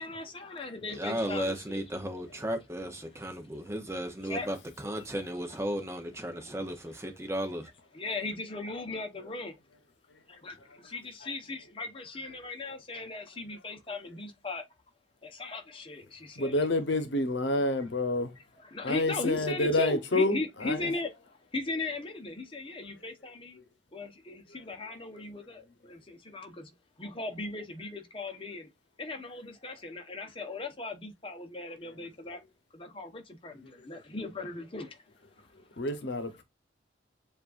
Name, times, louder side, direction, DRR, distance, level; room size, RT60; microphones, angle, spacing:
voice 1, 0.0-2.1 3.2-3.3 4.2-4.5 7.9-9.6 10.3-14.7 15.2-16.7 18.7-23.6 23.9-28.7 29.0-32.4 32.7-35.0 35.4-35.5, left 2 dB, 30° left, 0.9 m, -38 dB
voice 2, 1.0-4.6 4.8-7.7, right 1 dB, 15° right, 0.6 m, -34 dB
voice 3, 16.4-18.3 18.8-20.9 35.5-36.4, left 2 dB, 70° left, 0.9 m, -29 dB
7.2 x 2.5 x 2.4 m
head